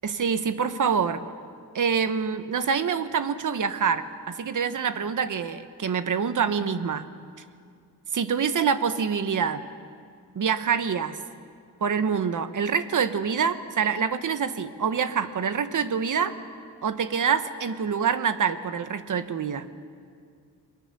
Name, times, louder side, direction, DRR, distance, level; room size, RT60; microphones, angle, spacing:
voice 1, 0.0-1.2 1.7-7.1 8.1-9.6 10.3-11.2 11.8-16.3 16.8-19.7, right 6 dB, 50° right, 11 dB, 1.2 m, -26 dB
29.5 x 21.5 x 6.9 m, 2.2 s
wide cardioid pair, 125°, 39 cm